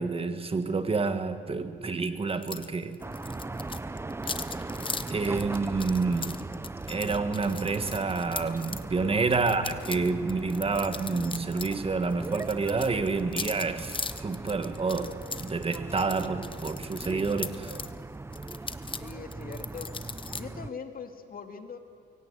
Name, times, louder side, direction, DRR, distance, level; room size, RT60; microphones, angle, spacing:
voice 1, 0.0-2.9 5.1-6.5 6.9-14.0 14.2-17.7, right 4 dB, 30° right, 1.7 m, -29 dB
sound 1, 2.4-2.7 2.9-8.8 9.3-11.8 12.0-17.9 18.3-20.4, left 4 dB, 25° left, 1.0 m, -39 dB
sound 2, 3.0-20.7, right 3 dB, 15° right, 0.6 m, -39 dB
voice 2, 8.9-9.4 19.0-19.9 20.3-21.8, left 5 dB, 45° left, 2.2 m, -41 dB
23.0 x 18.0 x 8.3 m
cardioid pair, 90°, 20 cm